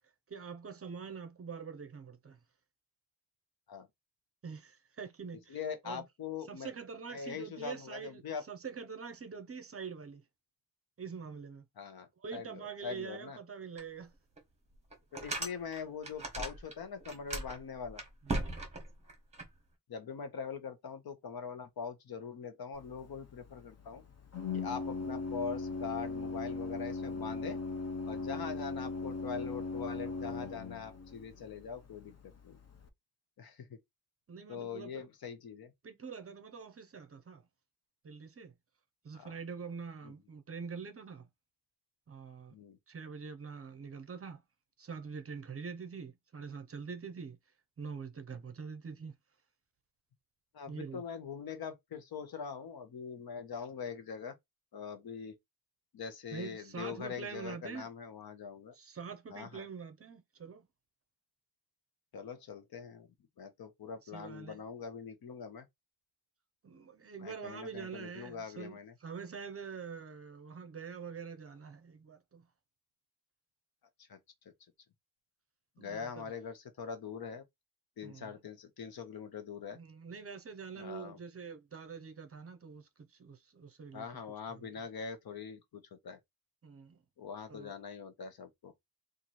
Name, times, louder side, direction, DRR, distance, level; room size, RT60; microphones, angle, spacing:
voice 1, 0.3-2.4 4.4-5.6 5.8-6.0 6.5-10.2 11.0-11.6 12.2-14.1 18.2-18.5 34.3-35.0 35.8-37.4 38.0-38.5 39.0-41.3 42.1-42.5 42.9-44.4 44.8-47.4 47.8-49.1 50.7-51.0 56.3-57.9 58.7-60.6 64.0-64.6 66.6-72.5 75.8-76.2 78.0-78.3 79.7-84.2 84.5-84.7 86.6-87.0 87.5-87.7, right 6 dB, 40° right, 0.6 m, -45 dB
voice 2, 5.5-6.7 7.1-8.4 11.8-13.4 15.1-18.0 19.9-24.0 24.5-27.6 28.1-32.6 33.4-33.8 34.5-35.7 39.1-39.4 40.0-40.1 42.5-42.8 50.5-54.4 54.7-55.4 55.9-58.7 59.3-59.6 62.1-63.1 63.4-65.7 67.2-68.9 74.0-74.2 75.8-77.4 78.0-79.8 80.8-81.2 83.9-86.2 87.2-88.7, left 6 dB, 70° left, 0.9 m, -43 dB
sound 1, 13.8-13.9 14.4-14.5 14.9-16.7 17.0-19.5, right 2 dB, 15° right, 1.3 m, -38 dB
Organ, 22.7-32.9, left 3 dB, 40° left, 0.7 m, -40 dB
3.0 x 2.5 x 4.1 m
wide cardioid pair, 165°, 37 cm